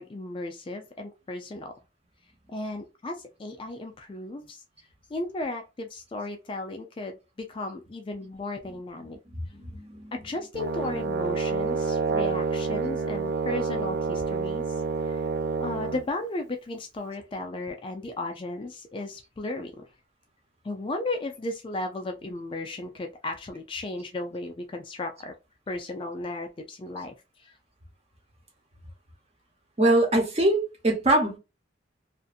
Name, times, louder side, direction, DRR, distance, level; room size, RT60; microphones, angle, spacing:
voice 1, 0.0-1.7 2.5-4.6 5.1-9.2 10.1-15.3 15.6-19.8 20.6-25.3 25.7-27.6, left 2 dB, 25° left, 0.3 m, -35 dB
voice 2, 9.0-10.1 29.8-31.4, right 1 dB, 30° right, 0.8 m, -24 dB
Brass instrument, 10.5-16.0, right 4 dB, 55° right, 0.3 m, -28 dB
2.6 x 2.5 x 2.4 m
head